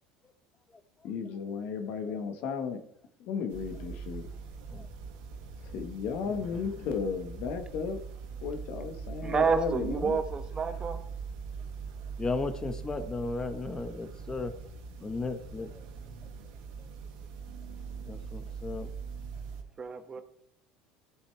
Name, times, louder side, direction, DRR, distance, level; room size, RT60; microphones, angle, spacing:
voice 1, 1.0-2.8 3.2-4.3 5.6-8.0 8.4-10.2, left 6 dB, 65° left, 6 dB, 1.5 m, -34 dB
voice 2, 1.8-2.2 4.7-4.9 6.2-6.9 12.2-14.6 15.0-15.8 16.2-16.3 16.8-16.9 18.0-18.9, left 3 dB, 20° left, 9 dB, 1.3 m, -36 dB
sound 1, 3.5-19.6, right 5 dB, 80° right, 2.1 m, -42 dB
voice 3, 9.2-11.0 19.8-20.2, right 5 dB, 30° right, 9 dB, 1.2 m, -29 dB
14.5 x 8.0 x 3.4 m, 0.66 s
supercardioid pair, 100°, 3 cm